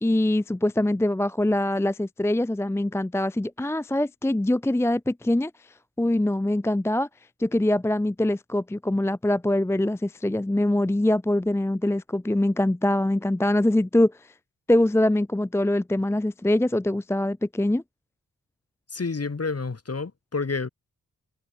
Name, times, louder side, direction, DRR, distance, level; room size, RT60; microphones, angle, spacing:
voice 1, 0.0-7.1 7.4-14.3 14.7-17.8, left 1 dB, 10° left, 0.6 m, -23 dB
voice 2, 18.9-20.7, left 4 dB, 45° left, 6.1 m, -29 dB
cardioid pair, 65°, 33 cm